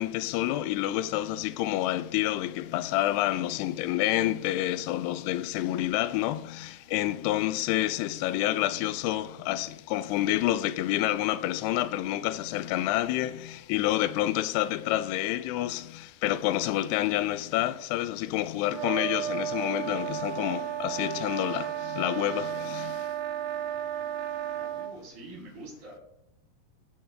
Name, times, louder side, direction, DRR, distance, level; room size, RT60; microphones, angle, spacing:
voice 1, 0.0-23.1, left 14 dB, 85° left, 2.5 m, -28 dB
sound 1, 18.7-24.9, right 11 dB, 80° right, 2.8 m, -33 dB
voice 2, 24.5-26.0, right 2 dB, 55° right, 5.1 m, -46 dB
17.5 x 8.1 x 2.2 m
omnidirectional pair, 4.8 m